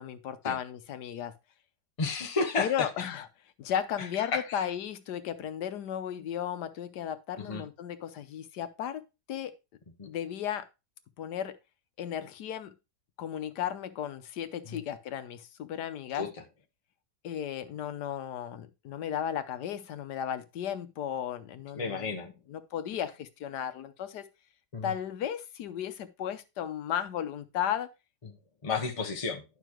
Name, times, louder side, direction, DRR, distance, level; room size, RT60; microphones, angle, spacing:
voice 1, 0.0-1.3 2.6-3.3 3.6-9.0 9.3-9.5 10.1-10.7 11.2-11.6 12.0-12.7 13.2-16.3 17.2-22.1 22.5-24.2 24.8-27.9, left 9 dB, 90° left, 1.4 m, -35 dB
voice 2, 2.0-2.9 4.3-4.7 7.4-7.6 10.0-10.1 14.7-14.8 16.1-16.3 21.7-22.3 24.7-24.9 28.6-29.4, left 4 dB, 25° left, 0.9 m, -32 dB
11.0 x 5.9 x 3.1 m
omnidirectional pair, 1.7 m